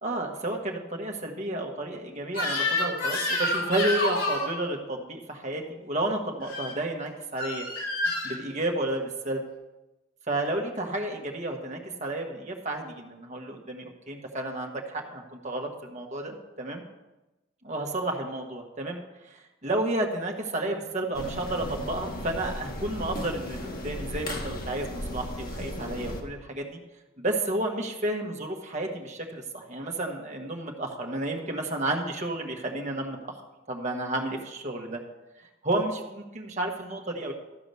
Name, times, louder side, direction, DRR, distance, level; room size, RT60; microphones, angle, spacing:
voice 1, 0.0-7.6 8.2-9.4 10.3-16.8 17.6-19.0 19.2-26.8 27.2-33.4 33.7-35.0 35.6-37.3, right 1 dB, 35° right, 1 dB, 1.4 m, -31 dB
Crying sobbing / Screech, 2.3-4.5 6.4-6.7 7.4-8.4, left 2 dB, 80° left, 3.6 m, -28 dB
sound 1, 21.1-26.2, left 1 dB, 45° left, 1.5 m, -36 dB
13.5 x 4.9 x 6.8 m, 1.0 s
head